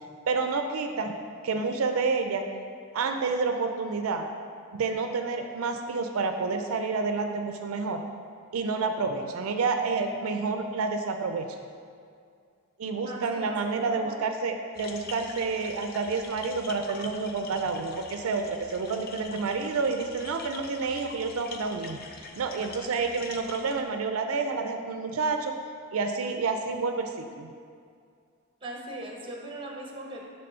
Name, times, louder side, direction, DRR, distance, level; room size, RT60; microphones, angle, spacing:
voice 1, 0.3-1.1 1.4-2.4 2.9-4.3 4.7-8.0 8.5-11.4 12.8-25.5 25.9-27.5, right 4 dB, 85° right, 5 dB, 0.4 m, -29 dB
voice 2, 13.0-14.2 28.6-30.2, right 1 dB, 25° right, -1 dB, 0.9 m, -40 dB
sound 1, 14.7-23.8, left 4 dB, 45° left, 0.5 m, -44 dB
6.8 x 3.3 x 5.5 m, 2.3 s
head